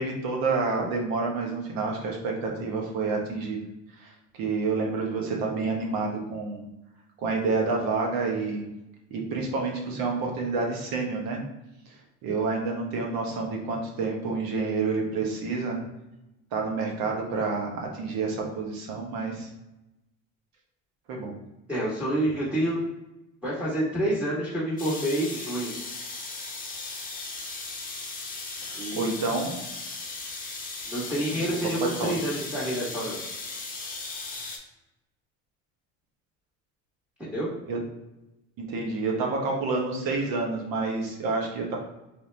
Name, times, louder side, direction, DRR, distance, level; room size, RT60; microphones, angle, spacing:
voice 1, 0.0-3.6 4.0-4.1 4.4-6.6 7.2-8.7 9.1-11.4 12.2-15.8 16.5-19.5 21.1-21.3 28.6-29.5 31.4-31.5 32.0-32.1 37.7-37.8 38.6-41.8, right 4 dB, 70° right, 0 dB, 1.2 m, -28 dB
voice 2, 21.7-22.8 23.4-25.7 28.7-29.1 30.8-33.2 37.2-37.5, right 1 dB, 5° right, -5 dB, 1.4 m, -28 dB
sound 1, 24.8-34.6, left 3 dB, 25° left, 0.8 m, -37 dB
3.4 x 2.7 x 3.3 m, 0.94 s
cardioid pair, 105°, 36 cm